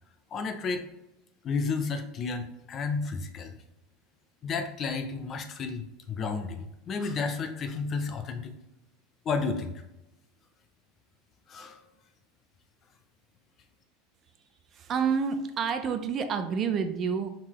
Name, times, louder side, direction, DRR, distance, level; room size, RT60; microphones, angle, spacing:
voice 1, 0.3-0.8 1.4-3.6 4.4-8.5 9.2-9.7 11.5-11.8, left 4 dB, 30° left, 7 dB, 0.5 m, -32 dB
voice 2, 14.7-17.3, right 6 dB, 30° right, 8 dB, 0.4 m, -28 dB
4.6 x 3.7 x 3.0 m, 0.92 s
supercardioid pair, 145°, 0 cm